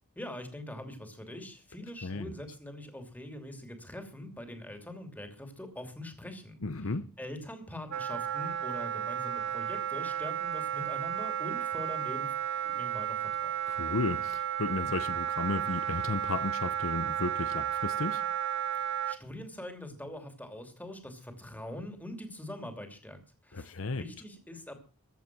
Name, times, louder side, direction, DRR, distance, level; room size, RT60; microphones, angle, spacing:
voice 1, 0.2-12.3 12.6-13.5 18.8-24.7, left 1 dB, 5° left, 2.9 m, -43 dB
voice 2, 2.0-2.3 6.6-7.1 13.7-18.2 23.5-24.0, left 3 dB, 65° left, 0.8 m, -34 dB
Wind instrument woodwind instrument, 7.9-19.2, right 9 dB, 55° right, 0.6 m, -33 dB
15.5 x 10.5 x 6.1 m
head